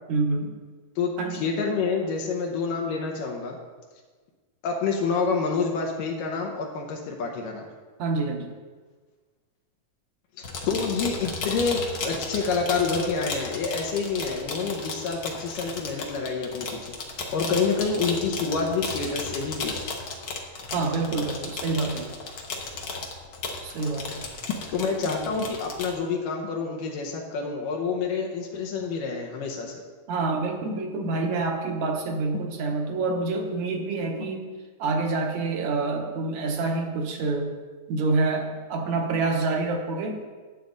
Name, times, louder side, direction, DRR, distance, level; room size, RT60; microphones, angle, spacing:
voice 1, 0.1-0.5 1.2-1.5 8.0-8.5 20.7-22.1 23.6-24.2 30.1-34.5 34.8-37.5 37.9-40.2, right 3 dB, 65° right, 3 dB, 2.1 m, -27 dB
voice 2, 1.0-3.6 4.6-7.7 10.7-17.0 17.3-19.8 24.7-29.8, left 5 dB, 80° left, 1 dB, 2.5 m, -28 dB
sound 1, 10.4-25.9, left 3 dB, 60° left, 1.3 m, -34 dB
11.5 x 8.4 x 3.9 m, 1.4 s
omnidirectional pair, 3.9 m